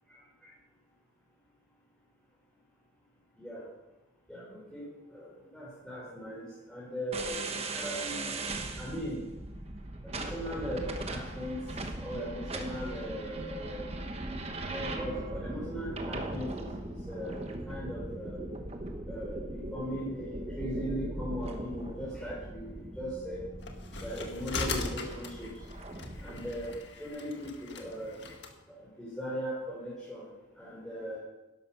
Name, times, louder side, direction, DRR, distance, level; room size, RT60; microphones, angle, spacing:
voice 1, 4.3-4.9 5.1-8.3 8.8-9.2 10.0-11.6 12.0-13.9 14.7-18.4 19.1-23.4 24.0-25.5 26.2-28.2 28.8-30.3 30.6-31.2, equal, 5° left, -8 dB, 3.8 m, -39 dB
sound 1, 7.1-26.8, right 2 dB, 35° right, 1.2 m, -39 dB
sound 2, 23.6-28.5, left 3 dB, 70° left, 1.7 m, -39 dB
12.0 x 11.5 x 5.6 m, 1.0 s
head